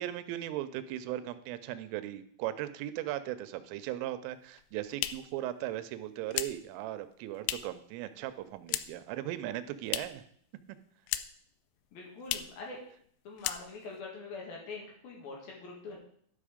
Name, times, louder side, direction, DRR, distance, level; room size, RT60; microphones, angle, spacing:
voice 1, 0.0-10.2, right 13 dB, 90° right, 12 dB, 3.2 m, -38 dB
sound 1, 4.4-7.9 8.2-9.1 9.4-10.3 10.6-11.5 11.8-11.9 12.2-12.6 13.0-13.1 13.4-14.0, left 14 dB, 85° left, 2.6 m, -37 dB
voice 2, 11.9-12.8 13.2-16.0, left 3 dB, 60° left, -1 dB, 3.1 m, -44 dB
12.0 x 5.6 x 5.0 m, 0.62 s
omnidirectional pair, 5.6 m